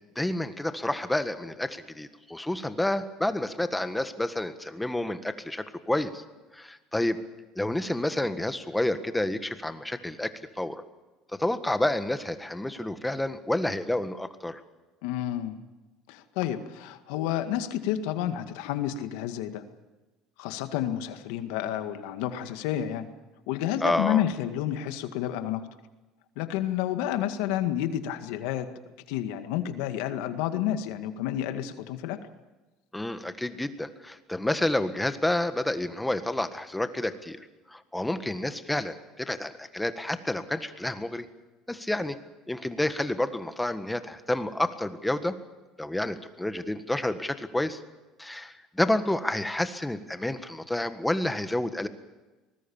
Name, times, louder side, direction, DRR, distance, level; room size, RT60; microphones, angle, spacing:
voice 1, 0.1-6.2 6.5-7.2 7.5-10.8 11.3-14.6 23.8-24.2 32.9-41.3 41.7-42.1 42.5-45.3 45.8-47.8 48.2-51.9, left 1 dB, 5° left, 10 dB, 1.6 m, -29 dB
voice 2, 15.0-15.6 16.1-19.6 20.4-23.1 23.5-25.6 26.4-28.7 29.1-32.2, left 11 dB, 85° left, 9 dB, 1.9 m, -30 dB
24.5 x 20.5 x 7.2 m, 1.1 s
cardioid pair, 125°, 0 cm